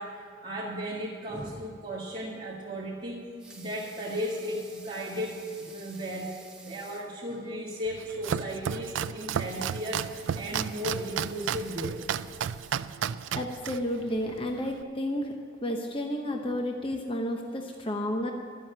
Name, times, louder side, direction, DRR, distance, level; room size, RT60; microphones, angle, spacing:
voice 1, 0.0-10.1 10.3-12.0, equal, 25° right, -8 dB, 1.8 m, -35 dB
Water tap faucet / Sink (filling or washing) / Liquid, 3.2-7.2 7.6-7.7 8.0-8.1 9.2-13.4 14.0-14.1, right 3 dB, 5° right, 1.2 m, -51 dB
Domestic sounds home sounds, 7.9-14.8, right 8 dB, 80° right, 0.4 m, -33 dB
voice 2, 13.4-15.3 15.6-18.3, left 1 dB, 30° left, 3 dB, 0.8 m, -31 dB
12.5 x 7.7 x 8.7 m, 2.3 s
head